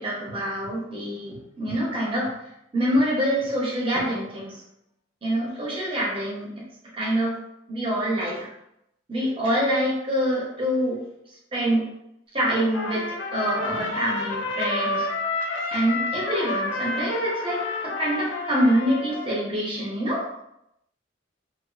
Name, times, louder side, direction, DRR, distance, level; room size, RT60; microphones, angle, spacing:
voice 1, 0.0-2.3 2.7-4.6 5.2-6.5 6.9-7.4 7.7-8.5 9.1-11.0 11.5-11.8 12.3-15.1 15.7-20.3, equal, 30° right, -5 dB, 0.7 m, -25 dB
Trumpet, 12.7-19.5, left 3 dB, 70° left, 0.5 m, -30 dB
2.4 x 2.3 x 2.3 m, 0.80 s
head